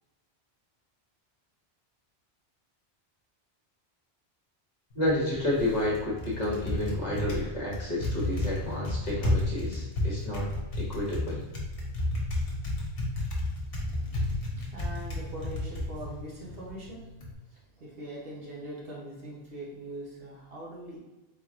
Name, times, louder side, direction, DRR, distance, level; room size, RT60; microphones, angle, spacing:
Typing, 4.9-17.3, left 1 dB, 60° left, 1.2 m, -33 dB
voice 1, 4.9-11.4, left 1 dB, 40° left, -5 dB, 1.2 m, -30 dB
voice 2, 13.9-17.1 17.5-21.0, right 1 dB, 65° right, -4 dB, 1.3 m, -42 dB
3.8 x 3.1 x 3.7 m, 1.1 s
omnidirectional pair, 1.1 m